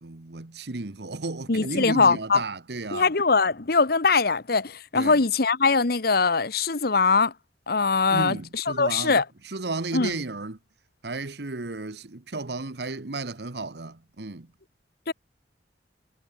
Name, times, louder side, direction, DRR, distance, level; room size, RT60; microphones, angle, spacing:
voice 1, 0.0-3.1 4.9-5.2 8.1-9.2 9.4-10.6 11.0-14.5, right 3 dB, 65° right, 1.2 m, -33 dB
voice 2, 1.5-2.4 2.9-7.3 7.7-9.2 9.9-10.1 15.1-15.2, left 4 dB, 60° left, 1.2 m, -22 dB
head